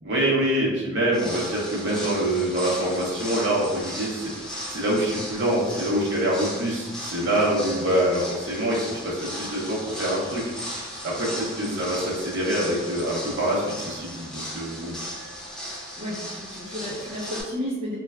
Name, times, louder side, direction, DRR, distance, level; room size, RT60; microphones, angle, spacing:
voice 1, 0.0-10.5 11.0-14.9, right 1 dB, 60° right, -5 dB, 0.7 m, -25 dB
sound 1, 1.1-17.4, equal, 5° left, 0.4 m, -36 dB
voice 2, 16.0-17.9, equal, 30° right, -11 dB, 0.7 m, -32 dB
3.1 x 2.4 x 2.3 m, 1.2 s
head